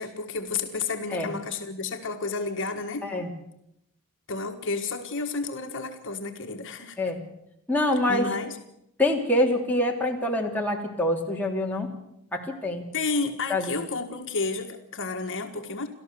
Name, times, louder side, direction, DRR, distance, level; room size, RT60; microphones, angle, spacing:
voice 1, 0.0-3.1 4.3-7.0 8.1-8.6 12.9-15.9, left 4 dB, 60° left, 4 dB, 1.6 m, -31 dB
voice 2, 7.7-8.2 9.0-11.9 12.3-12.8 13.5-13.8, left 1 dB, 10° left, -1 dB, 3.1 m, -25 dB
29.0 x 13.5 x 6.9 m, 0.79 s
head